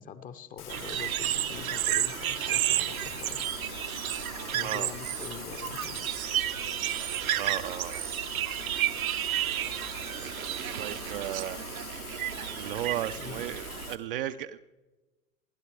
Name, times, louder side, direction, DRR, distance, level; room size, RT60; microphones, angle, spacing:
voice 1, 0.0-3.4 4.5-6.0 13.2-13.4, left 7 dB, 20° left, 13 dB, 0.7 m, -44 dB
Rain, 0.6-14.0, left 8 dB, 75° left, 1.4 m, -43 dB
sound 1, 0.7-13.9, right 13 dB, 65° right, 0.8 m, -32 dB
sound 2, 2.9-12.0, right 6 dB, 80° right, 1.6 m, -49 dB
voice 2, 7.3-8.0 9.6-11.6 12.6-14.6, right 12 dB, 40° right, 9 dB, 0.5 m, -36 dB
28.0 x 11.0 x 3.3 m, 1.2 s
figure-of-eight pair, 100°, 45 cm